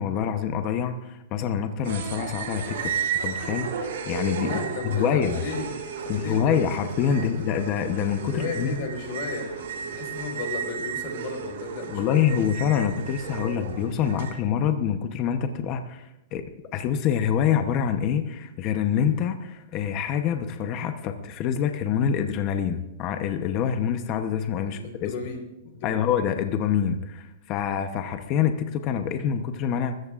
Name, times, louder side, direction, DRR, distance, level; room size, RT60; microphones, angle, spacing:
voice 1, 0.0-2.9 3.2-4.6 4.9-5.4 6.1-8.8 11.9-16.4 16.7-25.1 25.8-30.0, left 8 dB, 35° left, 7 dB, 0.9 m, -26 dB
sound 1, 1.8-14.3, right 7 dB, 75° right, 3.2 m, -33 dB
voice 2, 4.4-6.6 7.1-7.4 8.3-12.4 24.7-26.2, left 4 dB, 50° left, 3 dB, 4.5 m, -35 dB
23.5 x 14.5 x 2.5 m, 0.91 s
supercardioid pair, 155°, 0 cm